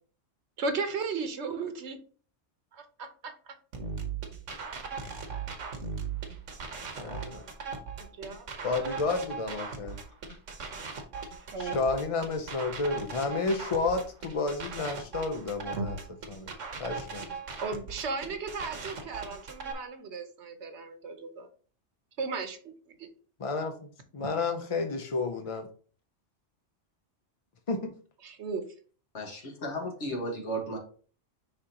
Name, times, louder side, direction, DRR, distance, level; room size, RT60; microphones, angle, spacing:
voice 1, 0.6-2.0 2.7-3.6 8.1-9.0 11.5-11.8 15.8-15.9 17.6-21.5 22.2-22.6 22.9-23.1 24.2-24.3 28.2-28.6, right 4 dB, 70° right, 1.2 m, -35 dB
sound 1, 3.7-19.7, right 5 dB, 85° right, 1.4 m, -39 dB
voice 2, 7.0-7.5 8.6-10.0 11.6-16.0 16.3-16.5 16.8-17.3 23.4-23.7 24.1-25.7 27.7-27.9, left 3 dB, 40° left, 0.5 m, -31 dB
voice 3, 29.1-30.8, right 1 dB, 70° left, 1.9 m, -34 dB
9.8 x 3.7 x 2.9 m
omnidirectional pair, 1.2 m